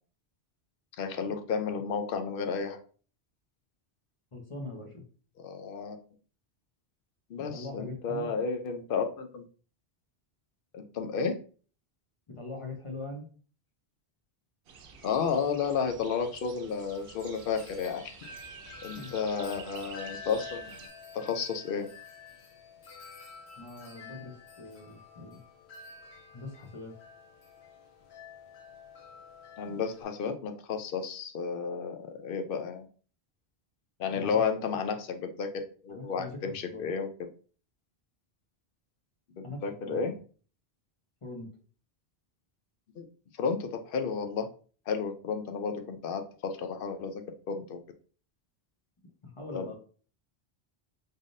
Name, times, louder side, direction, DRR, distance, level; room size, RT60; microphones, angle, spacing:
voice 1, 1.0-2.8 5.4-6.0 7.3-9.4 10.7-11.4 15.0-18.1 18.8-20.8 21.1-21.9 29.6-32.9 34.0-35.5 35.8-37.1 39.4-40.1 43.0-43.1 43.4-44.5 44.9-47.8 49.5-49.7, left 5 dB, 65° left, 7 dB, 0.7 m, -32 dB
voice 2, 4.3-5.0 7.4-8.3 12.3-13.3 18.9-19.1 23.6-25.4 26.3-26.9 34.1-34.4 35.9-36.4 36.7-36.9 39.4-40.2 41.2-41.5 49.2-49.7, left 2 dB, 35° left, 1 dB, 0.8 m, -42 dB
sound 1, 14.6-20.9, right 6 dB, 70° right, 0.8 m, -50 dB
Wind chime, 16.6-30.0, left 4 dB, 85° left, 1.1 m, -49 dB
3.8 x 3.5 x 2.5 m, 0.41 s
omnidirectional pair, 1.0 m